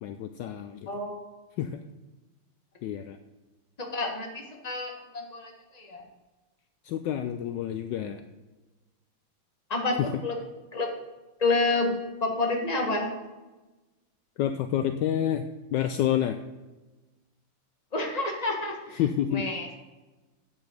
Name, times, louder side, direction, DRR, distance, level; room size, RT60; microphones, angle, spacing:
voice 1, 0.0-0.9 1.6-1.8 2.8-3.2 6.8-8.2 10.0-10.1 14.4-16.4 19.0-19.5, left 10 dB, 80° left, 9 dB, 1.0 m, -28 dB
voice 2, 0.9-1.2 3.8-6.0 9.7-10.4 10.7-10.9 11.4-11.9 12.2-13.1 17.9-19.0 19.3-19.8, left 3 dB, 20° left, 1 dB, 1.5 m, -29 dB
8.1 x 7.6 x 6.8 m, 1.1 s
omnidirectional pair, 2.4 m